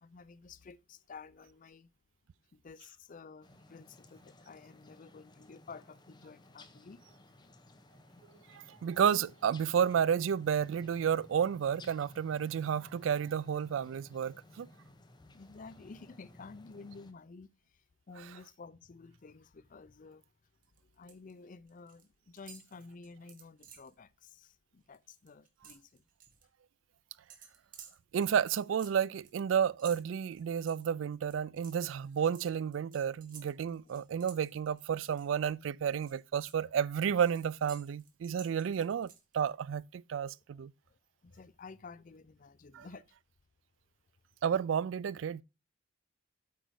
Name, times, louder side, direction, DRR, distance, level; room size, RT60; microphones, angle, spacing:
voice 1, 0.0-1.9 2.5-7.0 14.9-15.0 15.3-17.5 18.1-20.2 20.9-26.0 33.9-34.0 40.5-40.6 41.2-43.0, left 4 dB, 45° left, 0.5 m, -52 dB
sound 1, 3.4-17.1, left 1 dB, 25° left, 0.9 m, -57 dB
voice 2, 8.5-14.7 28.1-40.7 42.7-42.9 44.4-45.4, right 8 dB, 85° right, 0.3 m, -31 dB
sound 2, 20.6-21.3 21.6-22.1 22.4-24.0 24.4-24.5 24.8-26.4 27.3-35.5 35.9-39.5, right 7 dB, 45° right, 1.6 m, -56 dB
8.3 x 5.1 x 4.7 m
head